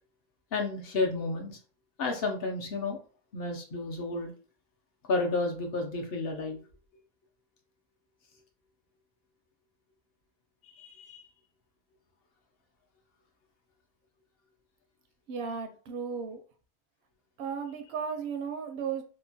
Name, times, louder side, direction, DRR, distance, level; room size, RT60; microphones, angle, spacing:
voice 1, 0.5-1.6 2.0-3.0 3.3-4.3 5.1-6.6 10.7-11.2, left 3 dB, 70° left, 2 dB, 0.9 m, -31 dB
voice 2, 15.3-16.4 17.4-19.0, right 6 dB, 80° right, 6 dB, 0.8 m, -35 dB
2.9 x 2.1 x 2.6 m, 0.37 s
omnidirectional pair, 1.1 m